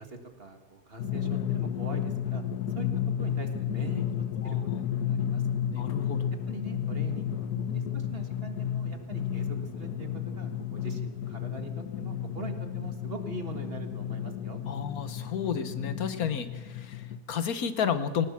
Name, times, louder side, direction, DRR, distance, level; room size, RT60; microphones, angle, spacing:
voice 1, 0.0-2.4 2.8-2.9 3.2-5.8 6.5-10.1 10.4-11.7 12.0-14.6, right 3 dB, 40° right, 6 dB, 2.0 m, -43 dB
Drum, 1.0-17.2, left 9 dB, 90° left, 1.6 m, -32 dB
voice 2, 4.4-4.8 5.7-6.3 14.6-18.3, left 7 dB, 70° left, 11 dB, 1.5 m, -32 dB
20.0 x 18.5 x 7.3 m, 1.4 s
omnidirectional pair, 1.6 m